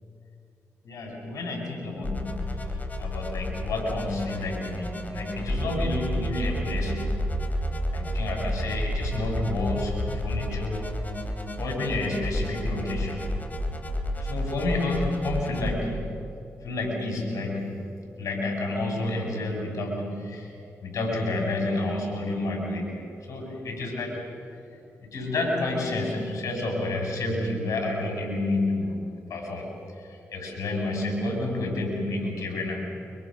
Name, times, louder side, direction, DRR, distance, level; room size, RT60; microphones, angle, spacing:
voice 1, 0.8-7.0 7.9-10.9 11.6-13.3 14.2-16.1 16.6-17.9 18.2-20.5 20.8-23.0 23.3-24.2 25.0-29.0 29.3-32.8, left 2 dB, 70° left, 1 dB, 7.1 m, -30 dB
sound 1, 2.0-15.7, equal, 30° left, 3.7 m, -31 dB
29.5 x 24.5 x 6.5 m, 2.5 s
supercardioid pair, 45°, 6 cm